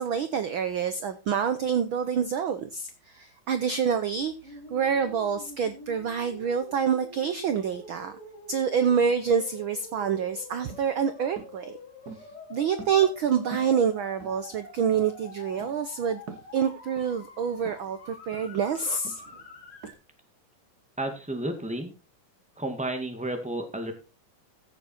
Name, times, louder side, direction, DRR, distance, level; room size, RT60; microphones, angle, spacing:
voice 1, 0.0-8.1 8.5-11.8 12.5-16.2 16.5-19.2, right 7 dB, 75° right, 11 dB, 1.1 m, -27 dB
sound 1, 4.4-19.9, left 2 dB, 45° left, 5.3 m, -46 dB
sound 2, 10.7-10.9 11.4-11.6 12.1-12.4 12.8-13.3 13.5-13.8 14.2-14.7 14.9-15.1 15.6-15.8 16.3-16.5 17.0-17.2 17.7-17.9 18.3-18.6 19.0-19.3 19.8-20.0, right 5 dB, 55° right, 1.1 m, -44 dB
voice 2, 21.0-21.9 22.6-23.9, right 1 dB, 5° right, 5 dB, 1.3 m, -32 dB
15.0 x 7.1 x 4.3 m, 0.30 s
omnidirectional pair, 3.5 m